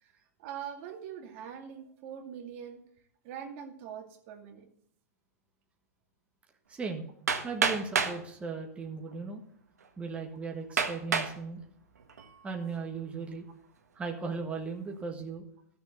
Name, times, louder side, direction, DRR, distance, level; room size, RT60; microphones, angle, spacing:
voice 1, 0.0-2.8 3.2-4.7, right 8 dB, 55° right, 3 dB, 2.3 m, -43 dB
voice 2, 6.7-7.0 7.4-9.4 10.0-11.6 12.4-13.4 13.9-15.4, right 4 dB, 15° right, 1 dB, 1.6 m, -37 dB
Hammer, 7.3-8.2 9.1-9.2 9.8-9.9 10.8-11.4 12.0-12.4, right 5 dB, 90° right, 1.7 m, -28 dB
13.5 x 6.9 x 6.6 m, 0.68 s
hypercardioid pair, 115°, 9 cm